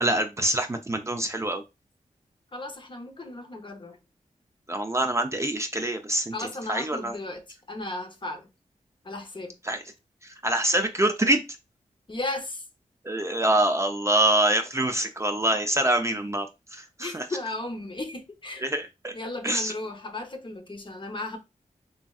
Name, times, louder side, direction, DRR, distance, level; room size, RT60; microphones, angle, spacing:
voice 1, 0.0-1.6 4.7-7.2 9.7-9.8 10.2-11.4 13.0-16.5 16.7-17.3 18.6-19.1 19.4-19.7, right 1 dB, 20° right, 0.4 m, -25 dB
voice 2, 2.5-4.0 6.3-8.5 9.0-9.6 12.1-12.6 17.0-18.7 19.1-21.4, left 2 dB, 35° left, 0.7 m, -35 dB
3.1 x 2.6 x 2.3 m
cardioid pair, 60°, 14 cm